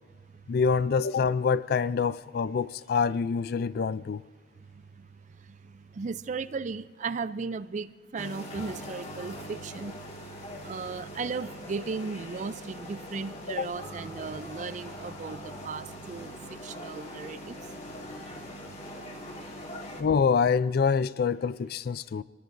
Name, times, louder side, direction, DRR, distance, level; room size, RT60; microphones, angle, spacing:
voice 1, 0.5-4.2 13.5-13.7 20.0-22.2, left 5 dB, 60° left, 0.4 m, -26 dB
voice 2, 6.0-9.9 10.6-16.3 16.6-17.6, right 4 dB, 45° right, 0.4 m, -36 dB
sound 1, 8.2-20.0, equal, 40° left, 2.0 m, -42 dB
27.5 x 20.0 x 2.6 m
head